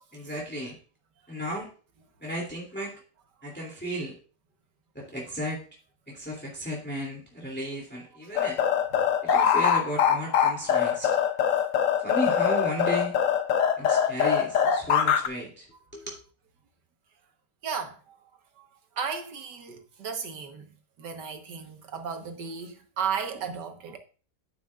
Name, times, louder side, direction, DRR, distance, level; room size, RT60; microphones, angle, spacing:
voice 1, 0.1-0.8 1.3-1.7 2.2-3.0 3.4-4.1 4.9-5.6 6.1-8.6 9.2-11.2 12.0-13.1 13.8-15.7 15.9-16.1, equal, 5° left, 2.6 m, -34 dB
sound 1, 8.4-15.3, left 8 dB, 60° left, 1.0 m, -23 dB
voice 2, 17.6-18.7 19.0-20.7 21.0-24.0, right 6 dB, 80° right, 1.9 m, -35 dB
9.3 x 9.3 x 2.4 m
omnidirectional pair, 1.8 m